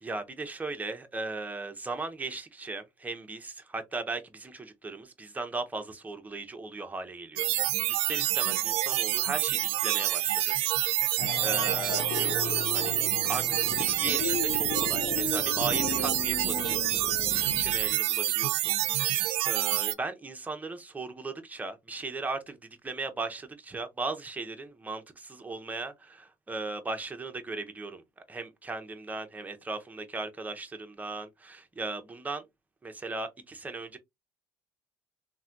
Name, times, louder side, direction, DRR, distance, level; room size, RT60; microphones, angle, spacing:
voice 1, 0.0-7.5 7.9-10.5 10.9-13.0 13.3-17.0 17.4-32.4 32.8-34.0, right 3 dB, 15° right, 0.6 m, -37 dB
sound 1, 7.4-19.9, right 14 dB, 70° right, 0.4 m, -27 dB
sound 2, 11.2-17.9, left 7 dB, 50° left, 0.5 m, -36 dB
3.2 x 2.2 x 2.5 m
supercardioid pair, 90°, 10 cm